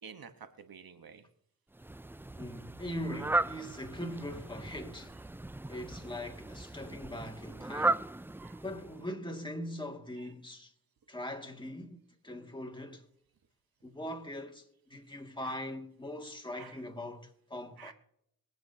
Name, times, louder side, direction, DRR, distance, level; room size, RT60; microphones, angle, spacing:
voice 1, 0.0-1.3 8.4-8.6 15.4-15.6 16.5-16.8 17.8-17.9, right 6 dB, 75° right, 1.3 m, -50 dB
Fowl, 1.7-9.1, right 2 dB, 5° right, 0.3 m, -36 dB
voice 2, 2.4-5.2 5.7-8.1 8.6-10.7 11.1-12.0 12.2-13.1 13.8-17.9, left 1 dB, 15° left, 2.1 m, -41 dB
24.0 x 8.8 x 2.8 m
cardioid pair, 45°, 36 cm